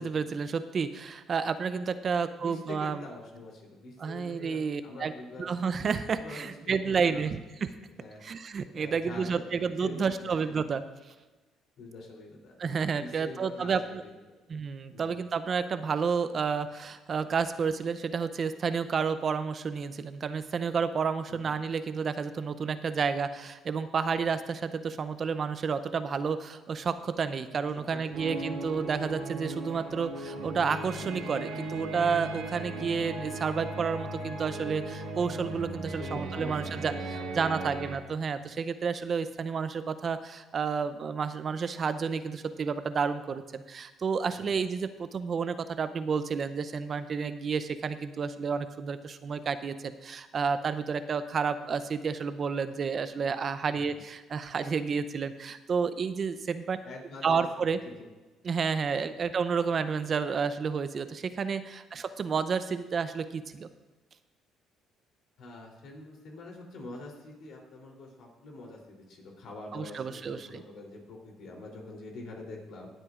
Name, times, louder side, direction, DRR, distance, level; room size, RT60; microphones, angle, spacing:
voice 1, 0.0-3.0 4.0-5.1 5.4-7.7 8.2-10.8 12.6-14.0 14.5-56.8 57.2-57.8 58.4-63.7 69.7-70.5, right 5 dB, 45° right, 12 dB, 0.6 m, -30 dB
voice 2, 2.4-5.5 6.2-7.2 8.0-8.2 8.7-10.6 11.8-12.5 13.0-14.1 14.9-15.2 21.3-21.5 27.9-28.5 36.0-37.8 44.3-44.5 53.7-53.9 56.8-58.0 65.4-72.9, left 2 dB, 65° left, 0 dB, 3.2 m, -45 dB
sound 1, 28.1-38.0, right 2 dB, 75° right, 2.3 m, -37 dB
21.0 x 8.0 x 2.5 m, 1.2 s
supercardioid pair, 85°, 0 cm